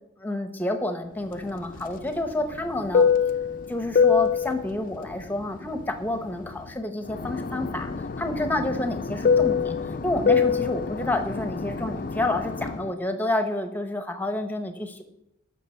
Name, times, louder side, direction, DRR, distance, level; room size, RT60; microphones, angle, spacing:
voice 1, 0.2-3.1 3.7-9.7 10.0-15.0, left 2 dB, 10° left, 7 dB, 0.9 m, -29 dB
Fixed-wing aircraft airplane, 1.3-6.7 7.1-12.9, left 6 dB, 45° left, 0.4 m, -25 dB
12.0 x 5.9 x 4.4 m, 0.83 s
head